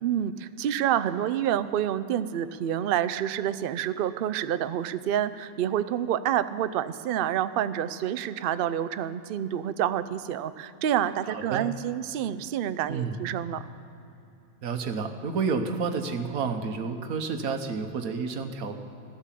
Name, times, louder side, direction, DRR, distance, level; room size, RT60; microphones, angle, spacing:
voice 1, 0.0-13.6, right 10 dB, 90° right, 13 dB, 0.4 m, -28 dB
voice 2, 11.3-11.7 12.9-13.2 14.6-18.8, right 5 dB, 75° right, 7 dB, 1.5 m, -30 dB
15.5 x 11.5 x 7.5 m, 2.9 s
omnidirectional pair, 1.6 m